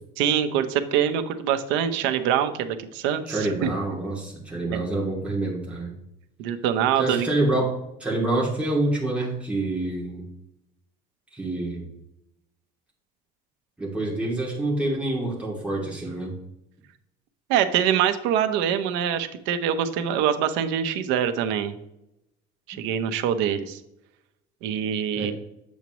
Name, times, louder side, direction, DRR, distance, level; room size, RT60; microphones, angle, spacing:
voice 1, 0.2-3.7 4.7-4.8 6.4-7.3 17.5-21.8 22.7-23.8 24.6-25.3, right 9 dB, 85° right, 9 dB, 0.8 m, -24 dB
voice 2, 3.2-5.9 7.0-10.3 11.3-11.9 13.8-16.4 25.2-25.3, right 2 dB, 5° right, -4 dB, 2.4 m, -27 dB
8.2 x 7.3 x 3.0 m, 0.84 s
cardioid pair, 150°, 19 cm